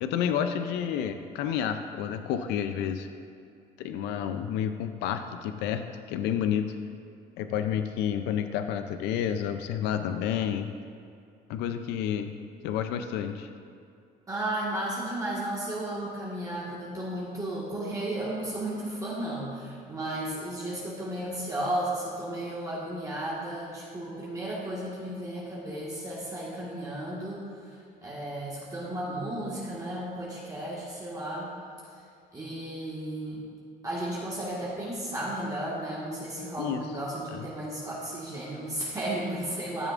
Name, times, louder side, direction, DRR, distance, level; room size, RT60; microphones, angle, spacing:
voice 1, 0.0-3.1 3.8-5.8 6.1-6.8 7.4-10.7 11.5-12.3 12.6-13.5 36.6-36.8 37.3-37.5, left 9 dB, 90° left, 8 dB, 0.4 m, -30 dB
voice 2, 14.3-31.5 31.9-32.0 32.3-33.4 33.8-39.9, right 1 dB, 20° right, -7 dB, 1.5 m, -34 dB
12.5 x 6.6 x 2.5 m, 2.5 s
cardioid pair, 110°, 17 cm